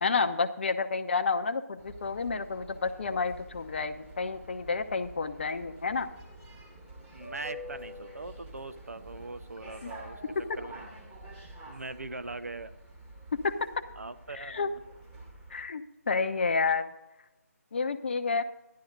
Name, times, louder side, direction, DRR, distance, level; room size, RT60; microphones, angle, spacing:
voice 1, 0.0-6.1 9.8-9.9 10.3-10.4 13.4-13.5 14.3-14.7 15.5-16.9 17.7-18.4, left 4 dB, 45° left, 8 dB, 0.7 m, -30 dB
sound 1, 1.8-15.6, right 1 dB, 10° right, 1.7 m, -48 dB
voice 2, 7.1-10.2 10.5-10.9 11.7-12.7 14.0-14.7, right 3 dB, 70° right, 12 dB, 0.7 m, -41 dB
11.5 x 10.5 x 3.9 m, 0.98 s
figure-of-eight pair, 150°, 8 cm